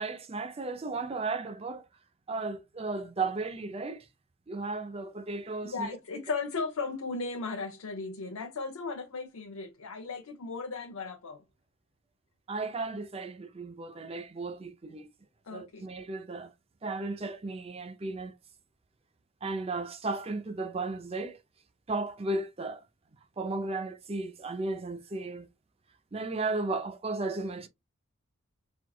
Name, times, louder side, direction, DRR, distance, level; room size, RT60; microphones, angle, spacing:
voice 1, 0.0-1.9 2.3-4.1 4.5-5.9 12.5-15.1 15.5-16.5 16.8-18.4 19.4-21.4 21.9-22.8 23.4-25.5 26.1-27.7, right 3 dB, 25° right, 0.4 m, -35 dB
voice 2, 5.6-11.4 15.4-15.9, left 4 dB, 85° left, 0.6 m, -36 dB
4.4 x 2.3 x 2.3 m
head